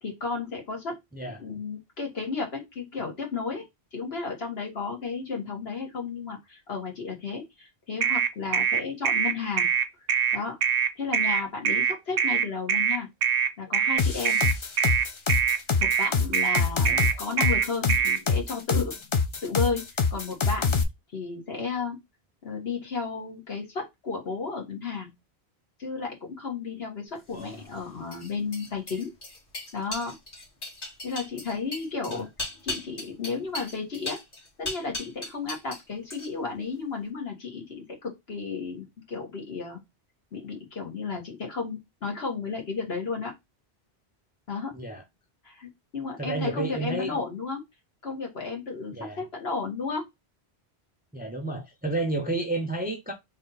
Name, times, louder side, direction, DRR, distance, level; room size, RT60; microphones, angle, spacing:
voice 1, 0.0-1.0 1.4-3.6 3.9-9.7 10.3-10.6 11.0-13.1 13.6-14.4 15.8-19.0 19.4-20.7 21.1-22.0 22.4-25.1 25.8-29.1 29.7-30.2 31.0-32.3 32.6-34.2 34.6-39.8 40.3-43.3 44.5-44.7 45.4-47.6 48.0-50.1, left 4 dB, 70° left, 1.7 m, -33 dB
voice 2, 1.1-1.4 16.8-17.0 27.3-27.7 32.1-32.3 44.7-45.0 46.2-47.2 48.9-49.3 51.1-53.1, right 2 dB, 10° right, 0.6 m, -31 dB
Intermittent Horn, 8.0-18.2, right 8 dB, 65° right, 0.8 m, -24 dB
sound 1, 14.0-20.8, left 5 dB, 40° left, 0.5 m, -25 dB
sound 2, 27.3-35.8 36.1-36.6, left 2 dB, 55° left, 1.8 m, -38 dB
3.3 x 2.8 x 4.0 m
omnidirectional pair, 1.1 m